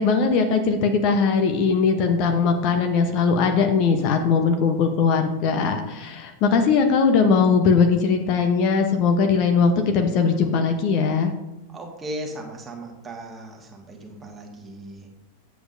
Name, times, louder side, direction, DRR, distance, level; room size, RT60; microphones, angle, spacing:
voice 1, 0.0-11.3, left 5 dB, 40° left, 5 dB, 0.9 m, -20 dB
voice 2, 11.7-15.0, right 1 dB, 20° right, 2 dB, 1.6 m, -37 dB
9.2 x 7.9 x 2.6 m, 0.96 s
figure-of-eight pair, 90°, 0 cm